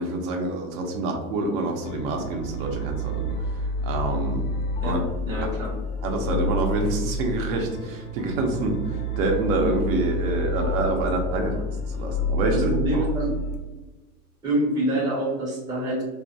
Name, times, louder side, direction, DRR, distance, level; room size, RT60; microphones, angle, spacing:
voice 1, 0.0-3.3 3.8-4.4 4.8-5.0 5.3-5.5 6.0-13.1, right 2 dB, 60° right, 2 dB, 0.7 m, -27 dB
sound 1, 1.8-13.6, left 1 dB, 55° left, 0.6 m, -29 dB
voice 2, 5.3-5.7 11.5-11.6 12.5-13.3 13.7-13.8 14.4-16.0, right 1 dB, 10° right, -5 dB, 0.6 m, -26 dB
2.5 x 2.1 x 2.7 m, 1.2 s
supercardioid pair, 125°, 45 cm